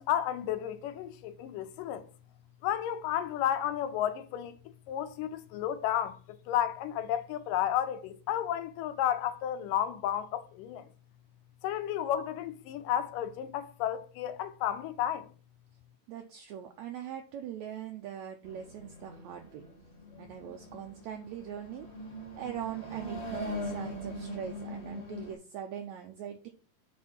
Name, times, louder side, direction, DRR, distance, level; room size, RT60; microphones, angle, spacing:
voice 1, 0.0-2.1 2.6-4.6 4.9-10.8 11.6-15.3, left 10 dB, 80° left, 2.3 m, -32 dB
voice 2, 16.1-19.6 20.2-21.9 22.3-26.5, right 9 dB, 85° right, 1.6 m, -41 dB
sound 1, 18.4-25.3, equal, 25° left, 0.9 m, -41 dB
6.2 x 4.2 x 5.5 m
omnidirectional pair, 3.9 m